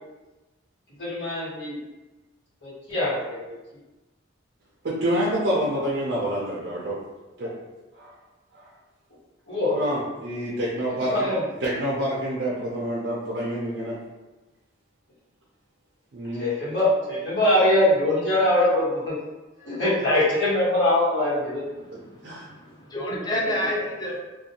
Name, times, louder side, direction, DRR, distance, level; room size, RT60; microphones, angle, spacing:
voice 1, 1.0-1.7 2.6-3.4 9.5-9.8 11.1-11.4 16.4-19.1 19.7-21.6, left 1 dB, 65° left, -10 dB, 1.3 m, -22 dB
voice 2, 4.8-7.0 7.4-7.5 8.0-8.1 8.5-8.7 9.7-11.3 11.6-14.0 16.1-16.5 21.9-22.5, right 1 dB, 55° right, -5 dB, 0.4 m, -27 dB
voice 3, 21.8-24.2, equal, 20° left, -3 dB, 0.4 m, -30 dB
2.5 x 2.2 x 2.8 m, 1.1 s
head